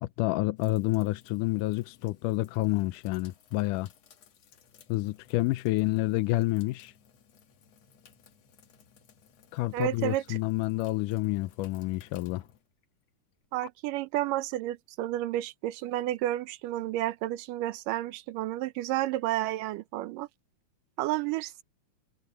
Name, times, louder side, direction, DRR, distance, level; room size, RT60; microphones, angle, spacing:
voice 1, 0.0-3.9 4.9-6.9 9.5-12.4, left 18 dB, 80° left, 2.0 m, -29 dB
sound 1, 0.6-13.7, left 8 dB, 55° left, 2.4 m, -58 dB
voice 2, 9.7-10.4 13.5-20.3 21.0-21.6, right 15 dB, 75° right, 2.3 m, -31 dB
omnidirectional pair, 4.1 m